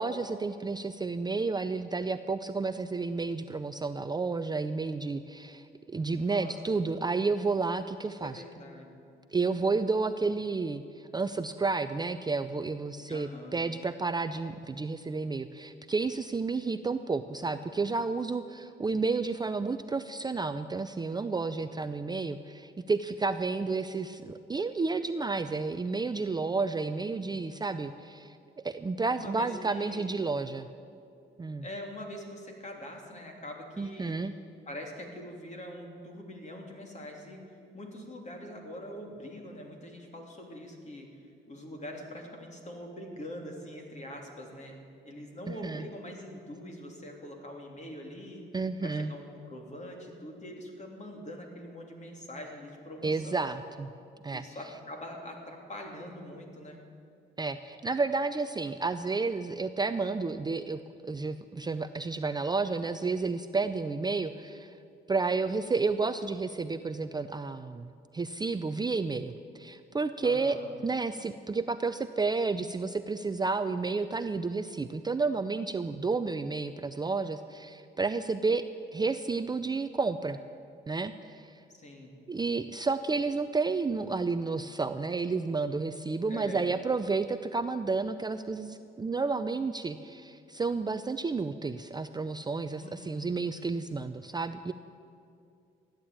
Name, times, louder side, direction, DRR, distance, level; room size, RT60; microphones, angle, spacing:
voice 1, 0.0-8.4 9.3-30.7 31.4-31.6 33.8-34.3 45.5-45.8 48.5-49.1 53.0-53.9 54.2-54.4 57.4-64.7 65.1-70.6 70.8-78.6 78.9-80.4 80.9-81.6 82.3-94.7, right 4 dB, 20° right, 10 dB, 0.5 m, -31 dB
voice 2, 6.2-6.8 8.0-9.0 13.1-13.6 29.1-30.1 31.6-34.4 34.7-41.2 41.5-48.4 48.8-53.4 54.3-56.8 70.2-70.7 81.7-82.2 86.3-86.7 92.8-93.3, left 1 dB, 35° left, 1 dB, 3.2 m, -44 dB
14.5 x 10.5 x 8.8 m, 2.5 s
cardioid pair, 90°, 20 cm